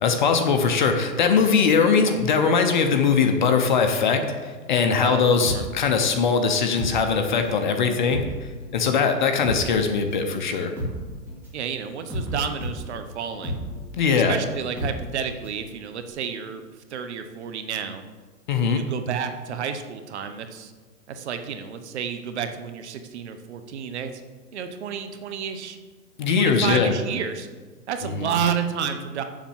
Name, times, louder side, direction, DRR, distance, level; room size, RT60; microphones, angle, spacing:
voice 1, 0.0-8.2 8.7-10.7 14.0-14.4 18.5-18.8 26.2-26.9 28.2-28.3, left 5 dB, 30° left, 6 dB, 0.7 m, -21 dB
sound 1, 5.4-7.7 7.9-15.6 15.9-16.0, equal, 5° right, 2.3 m, -33 dB
voice 2, 11.5-13.6 14.1-16.6 16.9-18.0 18.7-20.7 21.1-24.1 24.5-25.8 26.3-27.5 27.9-29.2, right 7 dB, 45° right, 8 dB, 0.9 m, -30 dB
7.4 x 7.1 x 7.2 m, 1.4 s
hypercardioid pair, 155°, 50 cm